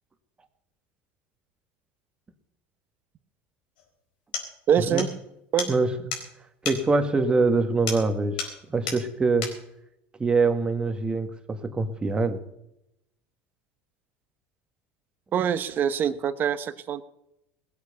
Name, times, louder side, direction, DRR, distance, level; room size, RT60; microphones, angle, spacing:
sound 1, 3.8-3.9 4.3-4.5 5.0-5.1 5.6-5.7 6.1-6.3 6.6-6.8 7.9-8.1 8.4-8.6 8.9-9.0 9.4-9.6, left 5 dB, 85° left, 4.5 m, -32 dB
voice 1, 4.7-5.1 5.5-5.7 15.3-17.0, right 8 dB, 45° right, 12 dB, 1.2 m, -24 dB
voice 2, 6.6-8.4 8.7-9.5 10.2-12.4, right 3 dB, 20° right, 7 dB, 1.8 m, -24 dB
19.0 x 8.4 x 6.8 m, 0.82 s
supercardioid pair, 100°, 5 cm